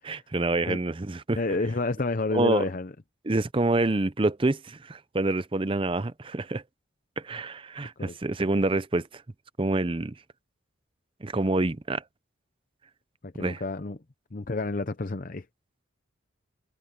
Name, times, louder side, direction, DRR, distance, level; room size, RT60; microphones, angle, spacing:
voice 1, 0.0-1.4 2.3-2.6 3.2-6.6 7.2-9.2 9.6-10.1 11.2-12.0 13.4-13.6, right 2 dB, 25° right, 0.6 m, -27 dB
voice 2, 1.4-2.9 8.0-8.2 13.2-14.0 14.3-15.5, left 3 dB, 40° left, 0.7 m, -29 dB
head